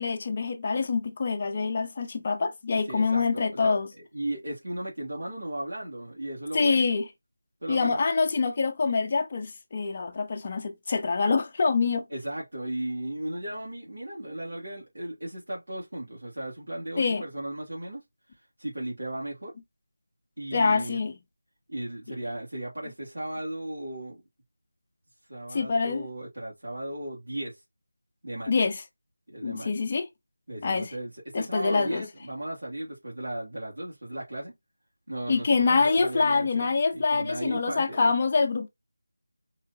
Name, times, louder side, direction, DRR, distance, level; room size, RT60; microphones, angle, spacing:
voice 1, 0.0-3.9 6.5-7.1 7.7-12.0 17.0-17.2 20.5-21.1 25.5-26.1 28.5-28.8 29.4-30.1 30.6-30.9 31.3-32.0 35.3-38.7, left 4 dB, 25° left, 0.8 m, -25 dB
voice 2, 2.9-3.8 4.1-6.8 7.6-8.0 12.1-18.0 18.6-19.5 20.4-21.0 21.7-24.2 25.3-27.6 28.2-28.5 29.3-29.7 30.5-34.5 35.1-38.1, right 1 dB, 80° right, 2.8 m, -36 dB
4.7 x 2.9 x 2.8 m
figure-of-eight pair, 175°, 0 cm